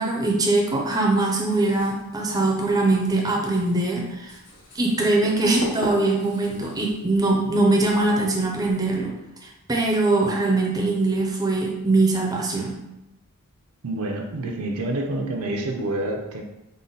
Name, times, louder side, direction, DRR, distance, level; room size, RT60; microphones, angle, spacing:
voice 1, 0.0-4.4 4.7-9.1 9.4-12.8, right 2 dB, 15° right, -1 dB, 0.5 m, -22 dB
Writing, 0.8-9.0, equal, 55° left, 0.9 m, -41 dB
voice 2, 13.8-16.4, right 2 dB, 70° right, 2 dB, 0.5 m, -28 dB
3.7 x 2.1 x 3.9 m, 0.93 s
head